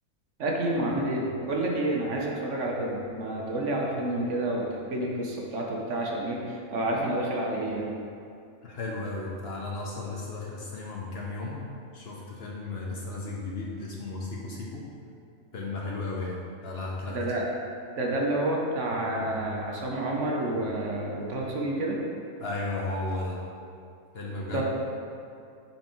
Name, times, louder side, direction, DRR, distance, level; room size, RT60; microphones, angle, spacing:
voice 1, 0.4-7.9 17.1-17.4 18.0-22.0 24.5-24.6, right 1 dB, 60° right, -2 dB, 1.1 m, -29 dB
voice 2, 8.6-11.7 11.9-14.8 15.5-17.2 22.4-23.4 24.1-24.6, left 2 dB, 55° left, -3 dB, 0.8 m, -34 dB
5.6 x 4.5 x 4.4 m, 2.5 s
omnidirectional pair, 1.5 m